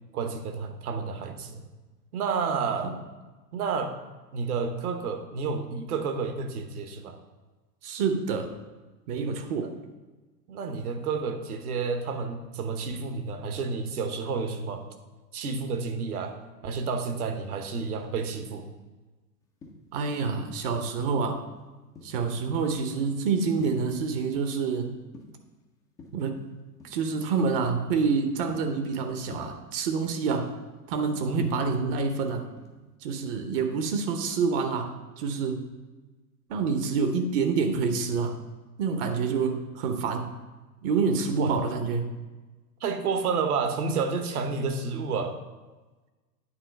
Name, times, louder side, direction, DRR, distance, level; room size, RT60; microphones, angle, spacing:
voice 1, 0.1-1.6 2.1-2.9 3.5-3.9 4.3-7.2 9.5-9.7 10.5-14.8 15.3-16.4 16.6-18.7 31.3-31.5 41.4-41.5 42.8-45.3, right 5 dB, 60° right, 6 dB, 1.2 m, -30 dB
voice 2, 7.8-8.5 9.1-9.8 19.9-21.4 22.0-24.9 26.1-26.5 26.8-30.5 30.9-32.5 33.0-35.7 36.5-38.4 38.8-40.4 40.8-42.1, right 5 dB, 35° right, 6 dB, 0.8 m, -27 dB
sound 1, 19.4-20.7 21.1-22.4 22.8-23.2 23.6-24.7 25.0-25.5 26.0-26.3 26.8-27.0 27.4-29.0 29.3-30.5 30.8-32.2 32.6-32.9, left 3 dB, 10° left, 0.4 m, -48 dB
8.9 x 3.8 x 5.2 m, 1.2 s
figure-of-eight pair, 100°, 50 cm